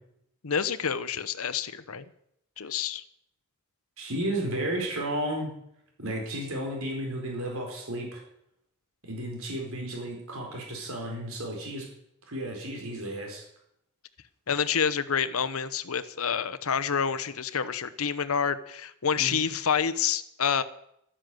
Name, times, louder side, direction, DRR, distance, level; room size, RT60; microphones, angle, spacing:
voice 1, 0.4-2.0 2.6-3.0 14.5-20.6, left 7 dB, 80° left, 13 dB, 0.9 m, -28 dB
voice 2, 4.0-5.5 6.0-8.2 9.0-11.9 12.3-13.4 19.1-19.5, right 1 dB, 75° right, 1 dB, 4.5 m, -33 dB
12.5 x 10.5 x 7.7 m, 0.75 s
head